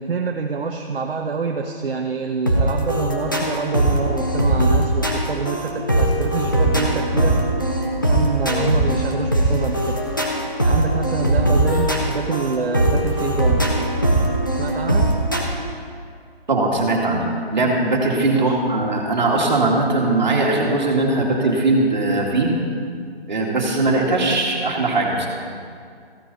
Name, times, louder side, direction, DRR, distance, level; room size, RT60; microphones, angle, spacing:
voice 1, 0.0-7.4 8.0-10.0 10.6-13.7 14.5-15.1 18.3-18.6, right 5 dB, 60° right, 3 dB, 0.9 m, -26 dB
sound 1, 2.5-15.4, right 1 dB, 20° left, 0.6 m, -20 dB
voice 2, 16.5-22.5 23.3-25.3, right 2 dB, 45° right, -2 dB, 2.2 m, -20 dB
15.0 x 9.2 x 4.1 m, 2.2 s
hypercardioid pair, 175°, 32 cm